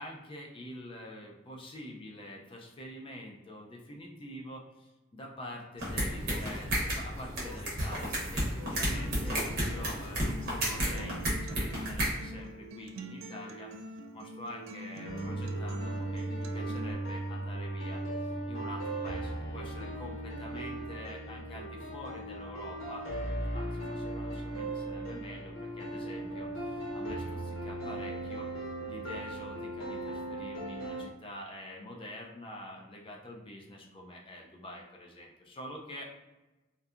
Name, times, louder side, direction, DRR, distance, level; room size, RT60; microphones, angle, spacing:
voice 1, 0.0-18.0 18.5-23.1 23.5-28.5 28.9-36.1, left 1 dB, 25° left, 0 dB, 0.4 m, -46 dB
sound 1, 5.8-12.1, equal, 50° right, 0.8 m, -32 dB
Acoustic guitar, 8.9-16.9, right 1 dB, 80° right, 0.3 m, -45 dB
sound 2, 15.0-31.0, right 1 dB, 75° left, 0.7 m, -37 dB
2.6 x 2.2 x 2.4 m, 1.1 s
head